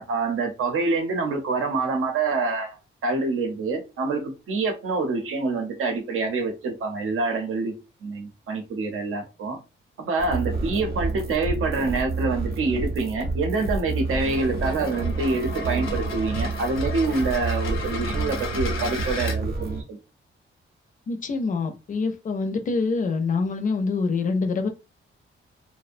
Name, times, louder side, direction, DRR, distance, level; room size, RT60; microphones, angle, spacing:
voice 1, 0.0-2.8 3.0-7.7 8.0-9.6 10.0-20.0, right 3 dB, 90° right, 0.7 m, -26 dB
sound 1, 10.2-19.8, right 3 dB, 50° right, 0.6 m, -29 dB
sound 2, 14.1-19.4, left 4 dB, 75° left, 0.7 m, -36 dB
voice 2, 21.1-24.7, left 4 dB, 40° left, 0.4 m, -25 dB
2.6 x 2.1 x 2.5 m
wide cardioid pair, 130°, 21 cm